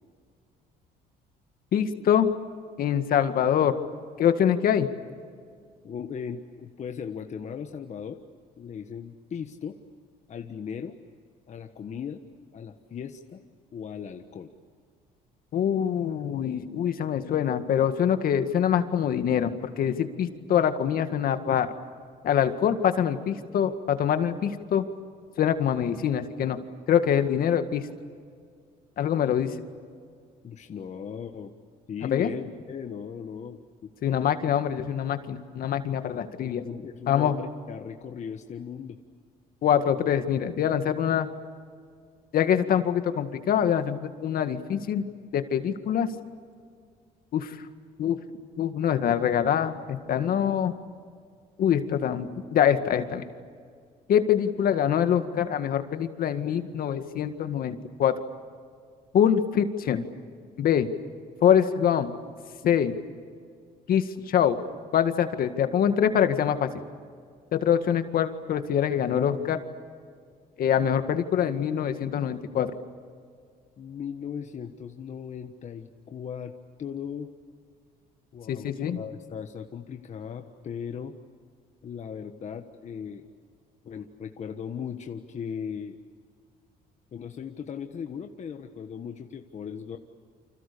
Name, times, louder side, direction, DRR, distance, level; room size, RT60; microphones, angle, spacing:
voice 1, 1.7-2.3 2.8-3.7 4.2-4.9 15.5-21.7 22.2-24.8 25.4-26.6 26.9-27.8 29.0-29.5 32.1-32.3 34.0-36.6 37.1-37.3 39.6-41.3 42.3-45.1 45.3-46.1 47.3-47.7 48.0-48.2 48.5-50.7 51.6-53.2 54.1-58.1 59.1-60.1 60.6-60.9 61.4-62.1 62.6-62.9 63.9-64.6 64.9-66.7 67.5-69.6 70.6-72.7 78.5-79.0, left 9 dB, 60° left, 8 dB, 2.0 m, -24 dB
voice 2, 5.8-8.2 8.6-9.8 10.3-11.0 11.5-12.2 12.5-13.4 13.7-14.5 30.4-31.5 31.9-33.9 36.6-39.0 73.8-77.3 78.3-81.2 81.8-83.3 83.8-86.0 87.1-90.0, left 7 dB, 45° left, 5 dB, 1.4 m, -37 dB
29.5 x 26.5 x 7.0 m, 2.1 s
cardioid pair, 110°, 17 cm